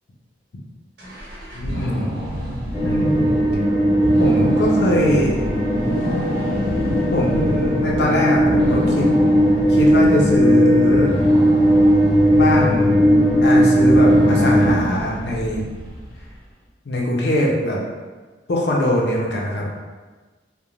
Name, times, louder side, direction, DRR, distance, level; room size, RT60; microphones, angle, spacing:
sound 1, 1.0-16.4, equal, 65° right, 0.8 m, -30 dB
voice 1, 1.5-2.2 2.8-3.4 4.2-5.4 7.1-9.1 9.7-11.1 12.3-13.0 13.4-15.6 16.8-17.8 18.5-19.7, left 1 dB, 65° left, -3 dB, 0.5 m, -22 dB
sound 2, 2.7-14.7, equal, 15° right, 0.7 m, -17 dB
2.4 x 2.1 x 3.0 m, 1.3 s
head